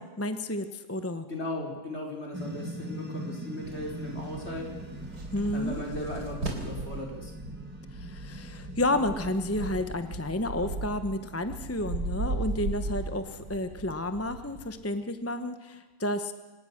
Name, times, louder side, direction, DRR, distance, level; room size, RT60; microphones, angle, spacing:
voice 1, 0.0-1.3 5.3-5.8 7.9-16.3, left 1 dB, 15° left, 9 dB, 0.7 m, -31 dB
voice 2, 1.3-7.3, left 1 dB, 40° left, 0 dB, 5.0 m, -37 dB
sound 1, 2.3-13.8, right 1 dB, 5° right, 2.1 m, -43 dB
sound 2, 3.6-7.0, right 2 dB, 90° right, 3.8 m, -39 dB
sound 3, 5.0-14.6, right 2 dB, 65° right, 5.4 m, -38 dB
26.0 x 18.5 x 6.5 m, 1.3 s
omnidirectional pair, 1.7 m